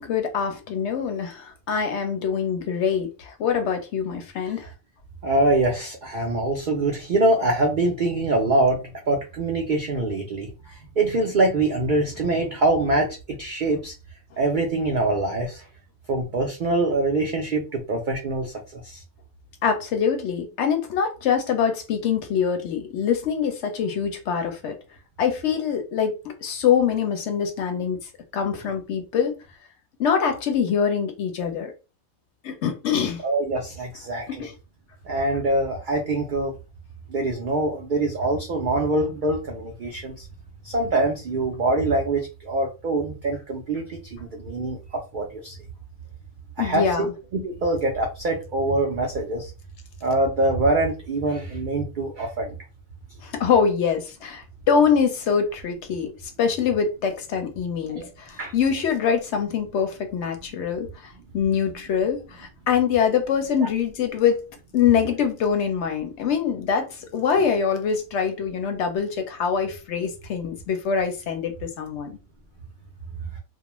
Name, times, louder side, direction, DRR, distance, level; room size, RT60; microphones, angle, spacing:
voice 1, 0.0-4.7 19.6-24.8 25.2-26.1 26.4-28.0 28.3-29.3 30.0-31.7 32.4-33.2 34.3-34.5 46.6-47.1 53.2-56.1 56.4-64.4 64.7-72.2, left 7 dB, 65° left, 0.8 m, -24 dB
voice 2, 5.2-13.9 14.4-15.6 16.1-19.0 33.2-34.5 35.0-36.6 37.1-40.3 40.6-45.6 46.6-49.5 50.0-52.6 57.9-58.1 58.4-58.5 63.6-63.7, right 2 dB, 75° right, 0.4 m, -24 dB
2.4 x 2.1 x 2.9 m
omnidirectional pair, 1.4 m